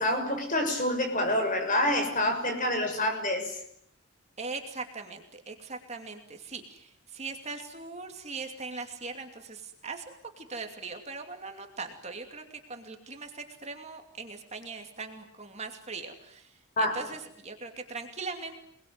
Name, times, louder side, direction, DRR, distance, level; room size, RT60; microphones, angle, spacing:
voice 1, 0.0-3.6 16.8-17.0, left 1 dB, 35° left, 5 dB, 6.8 m, -27 dB
voice 2, 4.4-12.4 12.7-18.6, right 4 dB, 30° right, 4 dB, 2.7 m, -40 dB
28.5 x 21.0 x 9.6 m, 0.70 s
head